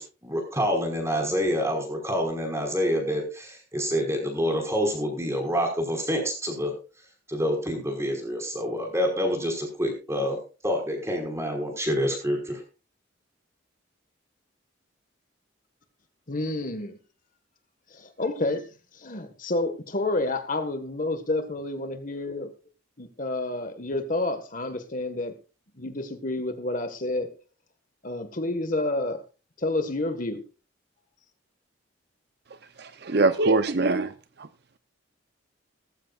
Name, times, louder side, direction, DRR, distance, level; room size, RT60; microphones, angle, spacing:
voice 1, 0.0-6.7 7.3-10.4 10.6-12.6, equal, 15° right, 3 dB, 5.3 m, -27 dB
voice 2, 16.3-17.0 17.9-18.6 18.9-22.5 23.0-25.3 25.8-27.3 28.0-29.2 29.6-30.4, left 2 dB, 40° left, 7 dB, 1.7 m, -29 dB
voice 3, 32.8-34.1, right 3 dB, 55° right, 11 dB, 0.8 m, -22 dB
18.5 x 15.0 x 2.5 m, 0.34 s
head